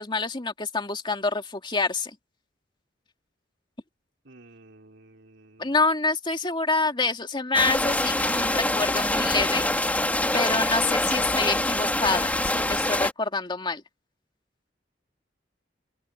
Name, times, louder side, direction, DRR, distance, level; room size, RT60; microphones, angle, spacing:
voice 1, 0.0-2.1 5.6-9.7 10.3-13.8, left 3 dB, 25° left, 2.3 m, -27 dB
voice 2, 4.2-5.8, right 2 dB, 70° right, 3.9 m, -52 dB
sound 1, 7.5-13.1, left 1 dB, 10° left, 2.4 m, -25 dB
head